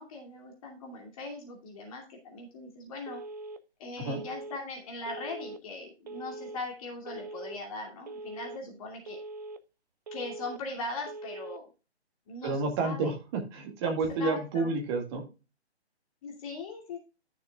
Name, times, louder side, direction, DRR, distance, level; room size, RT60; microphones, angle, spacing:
voice 1, 0.0-3.2 3.8-9.2 10.1-11.7 12.3-13.1 13.8-13.9 14.2-14.7 16.2-17.0, left 2 dB, 30° left, 0 dB, 2.6 m, -40 dB
Telephone, 3.1-3.6 4.1-4.6 5.1-5.6 6.1-6.6 7.1-7.6 8.1-8.6 9.1-9.6 10.1-10.6 11.1-11.6, right 2 dB, 40° right, 0.6 m, -42 dB
voice 2, 12.4-15.2, right 3 dB, 25° right, 3 dB, 2.0 m, -30 dB
13.0 x 6.6 x 2.4 m, 0.29 s
figure-of-eight pair, 145°, 33 cm